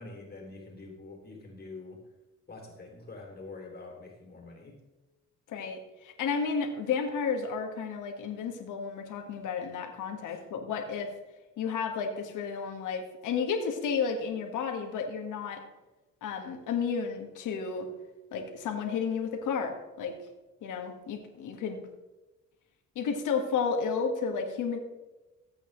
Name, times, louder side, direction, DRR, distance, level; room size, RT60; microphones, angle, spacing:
voice 1, 0.0-2.0 2.5-4.7 10.2-10.4, left 3 dB, 30° left, 0 dB, 3.2 m, -46 dB
voice 2, 5.5-11.1 11.6-15.6 16.2-17.9 18.3-20.1 20.6-21.9 23.0-24.8, left 6 dB, 85° left, 4 dB, 1.9 m, -32 dB
15.5 x 8.4 x 3.3 m, 1.1 s
cardioid pair, 90°, 30 cm